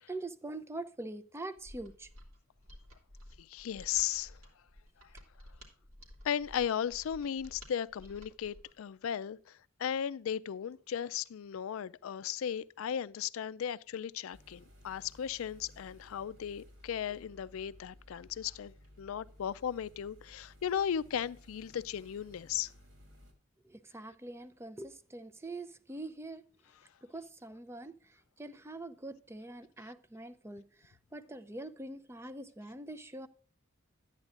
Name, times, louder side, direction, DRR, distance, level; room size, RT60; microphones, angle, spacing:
voice 1, 0.1-2.1 23.6-26.4 27.0-27.9 28.4-33.3, right 2 dB, 10° right, 0.5 m, -44 dB
Mechanisms, 1.6-8.8, equal, 80° right, 2.4 m, -54 dB
voice 2, 3.4-4.3 6.2-22.7, left 9 dB, 80° left, 0.4 m, -36 dB
sound 1, 14.3-23.3, equal, 65° right, 2.3 m, -58 dB
12.0 x 8.9 x 2.5 m
head